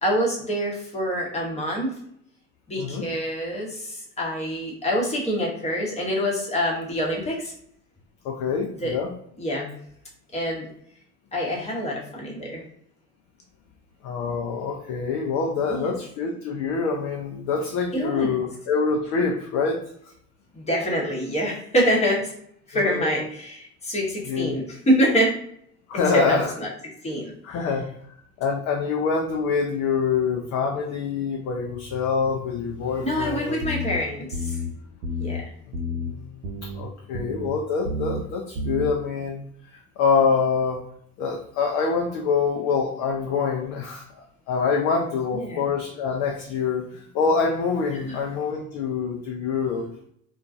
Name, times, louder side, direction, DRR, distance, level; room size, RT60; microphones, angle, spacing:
voice 1, 0.0-1.9 2.7-7.5 8.8-9.0 9.4-9.8 10.3-10.7 11.3-12.6 15.6-15.9 17.9-18.4 20.5-22.3 22.7-25.4 25.9-26.7 27.0-27.3 33.0-34.6 35.2-35.5 45.3-45.6 47.9-48.2, equal, 15° left, -3 dB, 0.9 m, -26 dB
voice 2, 2.8-3.1 8.2-9.1 14.0-19.8 22.7-23.2 24.3-24.6 25.9-26.5 27.4-27.9 28.4-33.6 35.9-36.3 36.6-39.4 39.7-40.8 41.2-44.1 44.5-49.9, left 5 dB, 35° left, 1 dB, 0.4 m, -25 dB
sound 1, 33.6-34.0 34.3-34.7 35.0-35.4 35.7-36.1 36.4-36.8 37.1-37.5 37.8-38.2 38.6-38.9, left 1 dB, 65° right, 0.7 m, -30 dB
2.3 x 2.2 x 2.4 m, 0.68 s
hypercardioid pair, 70°, 48 cm